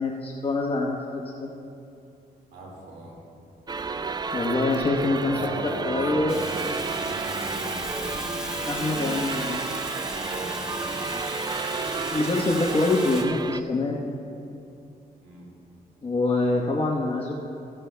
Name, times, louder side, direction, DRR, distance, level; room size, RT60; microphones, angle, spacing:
voice 1, 0.0-1.5 4.3-5.4 5.8-6.3 8.6-9.6 12.1-14.0 16.0-17.3, left 2 dB, 35° left, -3 dB, 1.1 m, -25 dB
voice 2, 2.5-3.2 5.0-8.7 10.1-11.1 15.2-15.5, right 1 dB, 85° right, -3 dB, 2.1 m, -39 dB
sound 1, 3.7-13.6, right 4 dB, 25° right, 0.3 m, -31 dB
Fire, 6.3-13.2, equal, 5° right, 1.6 m, -36 dB
16.0 x 12.0 x 2.3 m, 2.6 s
cardioid pair, 75°, 17 cm